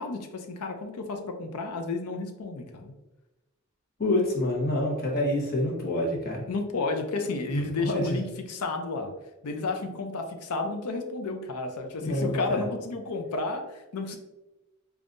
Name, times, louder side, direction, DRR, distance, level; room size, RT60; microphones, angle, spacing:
voice 1, 0.0-2.9 6.5-9.1 9.4-14.2, left 3 dB, 90° left, 5 dB, 0.5 m, -32 dB
voice 2, 4.0-6.4 7.5-8.1 12.0-12.7, left 1 dB, 40° left, -2 dB, 1.0 m, -27 dB
5.2 x 2.3 x 2.5 m, 1.0 s
head